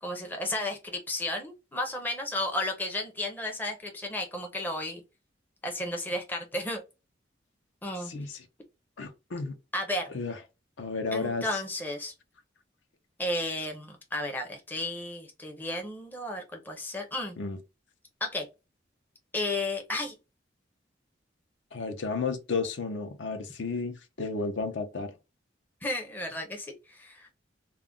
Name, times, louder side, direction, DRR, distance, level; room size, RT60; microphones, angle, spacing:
voice 1, 0.0-5.0 5.6-6.8 7.8-8.1 9.7-10.1 11.1-12.1 13.2-17.4 18.2-18.5 19.3-20.1 25.8-27.3, left 1 dB, 10° left, 0.5 m, -33 dB
voice 2, 8.0-8.4 9.0-9.5 10.1-10.4 10.8-11.6 17.4-17.6 21.7-25.1, left 4 dB, 75° left, 0.6 m, -32 dB
2.3 x 2.0 x 3.5 m
head